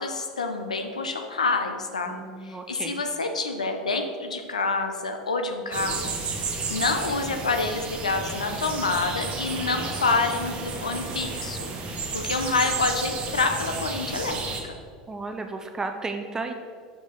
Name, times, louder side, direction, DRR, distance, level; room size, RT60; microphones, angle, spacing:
voice 1, 0.0-2.2 2.4-6.4 6.7-14.7, left 3 dB, 90° left, 5 dB, 0.7 m, -27 dB
voice 2, 2.1-3.0 15.1-16.5, right 3 dB, 15° right, 5 dB, 0.6 m, -33 dB
sound 1, 5.7-14.6, right 4 dB, 35° right, 1.2 m, -32 dB
6.1 x 5.2 x 5.1 m, 2.1 s
hypercardioid pair, 85°, 4 cm